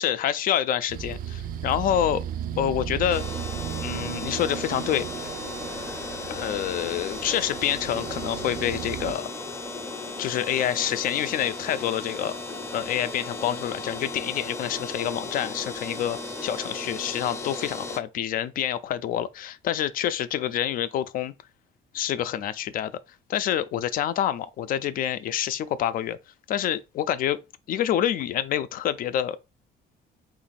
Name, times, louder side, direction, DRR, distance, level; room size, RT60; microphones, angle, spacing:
voice 1, 0.0-2.2 2.6-3.4 3.8-5.3 6.3-9.3 10.2-12.4 12.7-21.3 21.9-22.9 23.3-26.2 26.5-27.4 27.7-29.4, left 11 dB, 55° left, 0.4 m, -27 dB
sound 1, 0.9-9.1, right 9 dB, 55° right, 0.4 m, -35 dB
neon fluorescent store sign loud buzz close +heavy city tone, 3.1-18.0, left 3 dB, 15° left, 0.6 m, -36 dB
2.9 x 2.6 x 4.1 m
cardioid pair, 110°, 17 cm